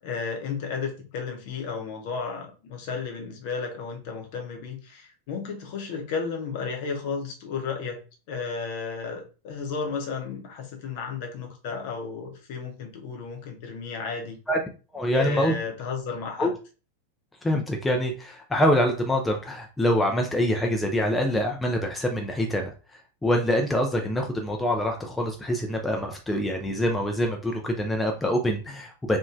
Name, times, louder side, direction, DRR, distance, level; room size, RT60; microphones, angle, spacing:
voice 1, 0.0-14.4 15.1-16.5, left 5 dB, 50° left, 3 dB, 0.7 m, -33 dB
voice 2, 14.9-15.5 16.4-16.5 17.4-22.7 23.2-29.2, equal, 10° left, 2 dB, 0.4 m, -25 dB
3.0 x 2.2 x 2.4 m, 0.34 s
figure-of-eight pair, 90°, 0 cm